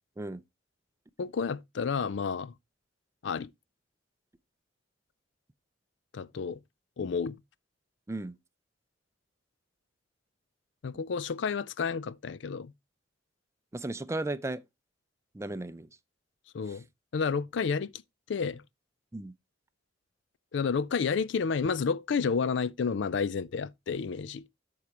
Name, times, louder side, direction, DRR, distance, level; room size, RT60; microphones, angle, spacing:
voice 1, 1.2-2.5 3.2-3.5 6.1-6.6 7.0-7.4 10.8-12.7 16.5-16.8 17.1-18.0 18.3-18.6 20.5-24.4, left 5 dB, 70° left, 0.4 m, -30 dB
voice 2, 13.7-14.6 15.3-15.9 16.7-16.8 19.1-19.3, right 2 dB, 15° right, 0.5 m, -35 dB
13.0 x 4.7 x 2.9 m
head